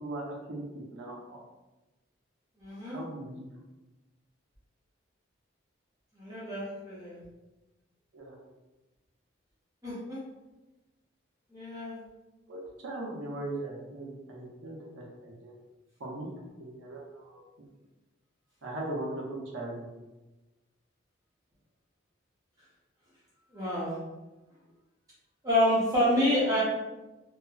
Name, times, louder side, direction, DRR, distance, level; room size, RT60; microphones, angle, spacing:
voice 1, 0.0-1.4 2.8-3.4 8.1-8.4 12.5-15.5 16.0-16.3 16.6-17.4 18.6-19.9, right 2 dB, 85° right, -3 dB, 0.7 m, -39 dB
voice 2, 2.6-3.0 6.2-7.2 9.8-10.2 11.5-12.0 23.5-24.0 25.4-26.6, left 1 dB, 20° right, -10 dB, 0.7 m, -28 dB
3.0 x 2.0 x 2.4 m, 1.1 s
head